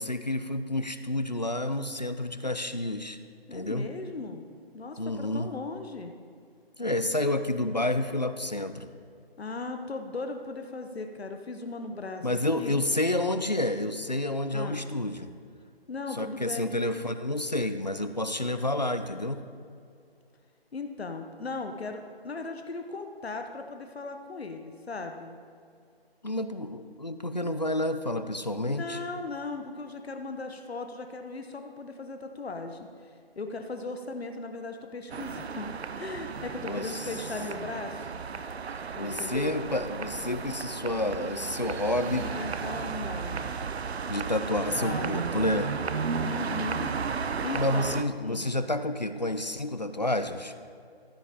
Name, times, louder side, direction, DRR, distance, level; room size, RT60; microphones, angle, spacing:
voice 1, 0.0-3.2 3.5-3.9 5.0-5.5 6.8-8.9 12.2-15.3 16.1-19.4 26.2-29.0 36.6-37.1 39.0-42.3 44.1-45.7 47.5-50.5, left 1 dB, 45° left, 10 dB, 0.4 m, -29 dB
voice 2, 3.5-4.4 4.7-6.2 9.4-12.3 12.6-12.8 14.5-14.8 15.9-16.7 20.7-25.4 28.6-38.1 39.0-39.5 42.1-43.5 44.4-45.3 46.2-46.9 47.4-48.0 48.2-48.5, left 3 dB, 75° left, 6 dB, 1.0 m, -37 dB
sound 1, 35.1-48.0, right 5 dB, 80° right, 0.6 m, -34 dB
14.0 x 7.4 x 4.2 m, 2.3 s
figure-of-eight pair, 180°, 31 cm